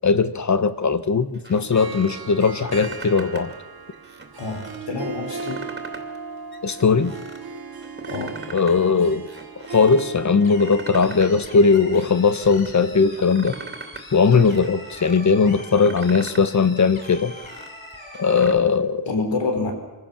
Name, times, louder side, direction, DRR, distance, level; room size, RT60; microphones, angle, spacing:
voice 1, 0.0-3.5 6.6-7.1 8.5-9.2 9.7-13.6 14.1-17.3 18.1-19.1, left 5 dB, 40° left, 12 dB, 1.2 m, -19 dB
sound 1, 1.3-2.1 2.5-3.5 3.9-4.8 5.2-6.2 6.5-7.4 7.8-8.8 9.1-10.0 10.4-11.4 11.7-12.7 13.1-14.0 14.3-15.2 15.6-16.5 16.8-18.5, right 3 dB, 25° right, 2.7 m, -40 dB
Harp, 1.6-11.9, right 5 dB, 55° right, 2.2 m, -37 dB
voice 2, 4.4-5.7 8.1-8.5 19.1-19.7, left 3 dB, 80° left, 4 dB, 4.4 m, -27 dB
sound 2, 10.4-18.4, left 2 dB, 20° left, 7.1 m, -42 dB
26.0 x 16.0 x 7.2 m, 1.2 s
wide cardioid pair, 130°, 44 cm